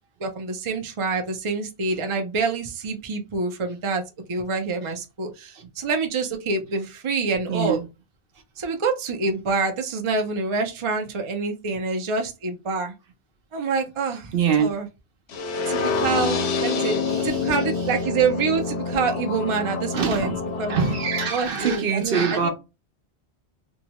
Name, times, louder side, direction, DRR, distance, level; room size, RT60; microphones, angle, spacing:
voice 1, 0.2-4.0 4.3-7.8 8.6-12.9 13.5-14.3 14.6-14.9 15.7-17.0 17.2-20.8 21.3-22.5, right 4 dB, 40° right, 0.4 m, -26 dB
voice 2, 7.5-7.9 14.3-14.7 17.2-17.3 19.9-20.4 20.7-22.5, right 6 dB, 60° right, 0.8 m, -23 dB
sound 1, 15.3-21.3, left 4 dB, 70° left, 0.9 m, -27 dB
2.7 x 2.1 x 2.8 m
omnidirectional pair, 1.2 m